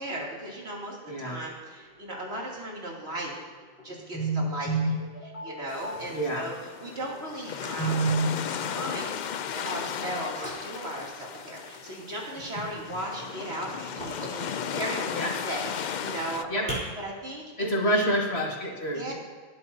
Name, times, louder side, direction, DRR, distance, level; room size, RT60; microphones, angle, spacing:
voice 1, 0.0-3.4 3.8-5.0 5.4-6.5 6.8-7.9 8.4-9.2 9.5-18.1 18.9-19.1, right 1 dB, 90° right, -3 dB, 3.2 m, -36 dB
voice 2, 1.1-1.4 4.1-6.5 7.8-8.3 15.1-15.3 16.5-16.7 17.6-19.1, right 1 dB, 80° left, -1 dB, 2.3 m, -28 dB
sound 1, 1.8-3.2 3.5-4.9 5.2-5.7 6.0-6.3 6.6-6.7 7.0-7.1 7.5-12.0 12.4-14.7 15.3-16.8, right 1 dB, 70° right, 3.3 m, -45 dB
sound 2, 5.7-16.4, left 8 dB, 55° left, 0.6 m, -35 dB
19.5 x 11.0 x 2.8 m, 1.5 s
omnidirectional pair, 1.1 m